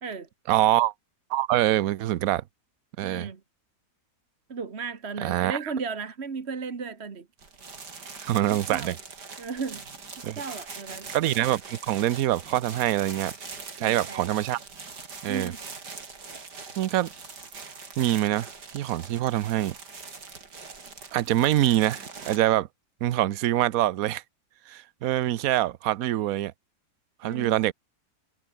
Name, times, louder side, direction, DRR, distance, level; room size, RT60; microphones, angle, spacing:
voice 1, 0.5-0.9 1.3-2.4 3.0-3.3 5.2-5.7 8.3-9.0 10.2-10.4 11.1-13.3 13.8-14.6 15.2-15.5 16.8-17.1 18.0-19.7 21.1-22.7 23.0-24.2 24.7-26.5 27.2-27.7, right 13 dB, 65° right, 1.1 m, -25 dB
voice 2, 3.0-3.4 4.5-7.3 8.5-9.0 9.4-9.8 10.4-11.1 13.8-14.3 15.3-15.6 27.2-27.7, right 5 dB, 40° right, 1.7 m, -35 dB
sound 1, 7.4-22.4, right 4 dB, 90° right, 3.8 m, -42 dB
omnidirectional pair, 1.8 m